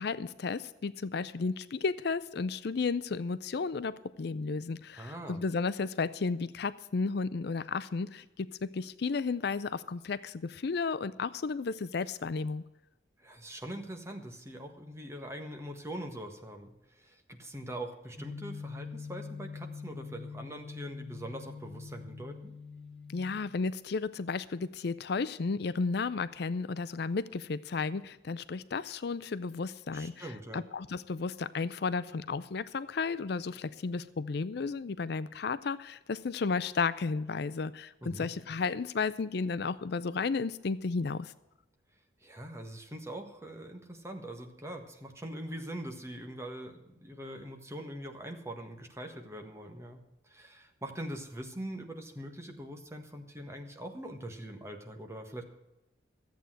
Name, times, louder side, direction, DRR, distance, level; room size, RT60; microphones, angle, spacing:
voice 1, 0.0-12.6 23.1-30.3 30.5-41.3, left 4 dB, 60° left, 15 dB, 0.5 m, -33 dB
voice 2, 4.9-5.4 13.2-22.5 29.9-30.6 38.0-38.3 42.2-55.4, right 1 dB, 15° right, 4 dB, 1.5 m, -42 dB
sound 1, 18.2-23.3, left 5 dB, 10° left, 2.7 m, -44 dB
13.5 x 8.3 x 7.6 m, 0.96 s
head